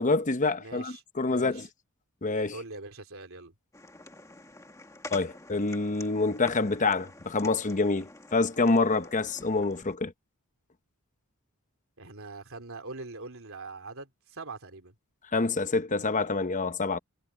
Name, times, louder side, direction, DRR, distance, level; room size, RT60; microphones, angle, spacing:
voice 1, 0.0-1.7 2.2-2.6 5.1-10.1 15.3-17.0, left 3 dB, 35° left, 1.0 m, -27 dB
voice 2, 0.6-1.0 1.3-1.7 2.5-3.5 12.0-14.9, right 3 dB, 65° right, 3.5 m, -42 dB
sound 1, 3.7-10.0, left 2 dB, 15° left, 1.8 m, -47 dB
head